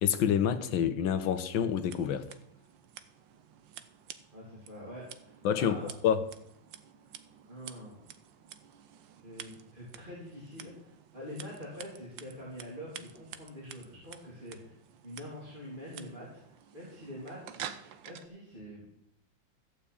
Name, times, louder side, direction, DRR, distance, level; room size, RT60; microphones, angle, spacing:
voice 1, 0.0-2.3 5.4-6.3, left 8 dB, 85° left, 1.8 m, -28 dB
Scissors, 1.7-18.3, right 9 dB, 75° right, 1.6 m, -50 dB
voice 2, 4.3-5.9 7.5-8.0 9.2-14.7 15.0-17.6 18.0-18.9, equal, 25° right, 3.3 m, -45 dB
14.5 x 6.1 x 8.6 m
omnidirectional pair, 2.1 m